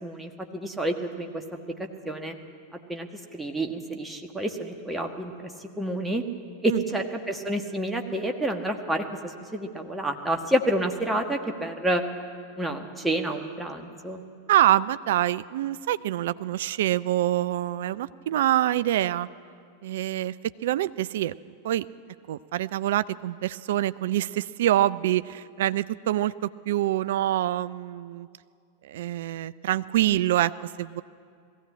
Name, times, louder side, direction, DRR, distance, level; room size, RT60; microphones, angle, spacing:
voice 1, 0.0-1.4 1.8-2.4 2.7-5.5 5.8-6.2 6.6-12.0 12.6-14.2, right 1 dB, 5° right, 3 dB, 1.5 m, -29 dB
voice 2, 14.5-19.3 19.8-20.3 20.6-21.3 21.6-21.9 22.3-28.3 28.8-31.0, right 13 dB, 55° right, 17 dB, 0.4 m, -25 dB
19.5 x 15.5 x 8.6 m, 2.3 s
figure-of-eight pair, 90°, 0 cm